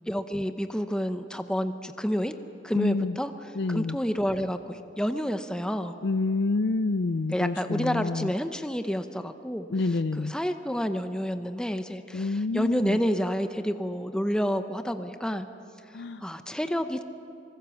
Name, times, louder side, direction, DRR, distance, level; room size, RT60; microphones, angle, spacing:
voice 1, 0.1-2.3 2.6-3.3 3.7-5.9 7.3-9.7 10.2-15.5 16.2-17.0, equal, 5° left, 8 dB, 0.7 m, -29 dB
voice 2, 2.7-3.2 3.6-4.0 6.0-8.3 9.7-10.3 12.1-13.0 15.9-16.2, left 3 dB, 60° left, 11 dB, 0.5 m, -28 dB
25.0 x 23.0 x 7.2 m, 2.7 s
head